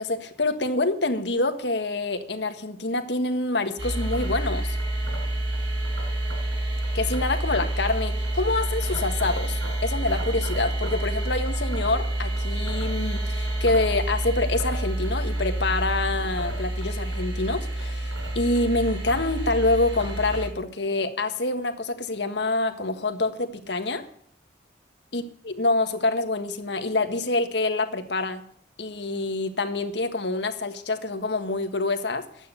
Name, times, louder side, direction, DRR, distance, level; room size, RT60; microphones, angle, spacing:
voice 1, 0.0-4.8 6.9-24.0 25.1-28.4 28.8-32.2, left 2 dB, 75° left, 7 dB, 1.6 m, -26 dB
sound 1, 3.8-20.5, right 1 dB, 80° right, 5.1 m, -28 dB
12.0 x 9.0 x 8.2 m, 0.64 s
head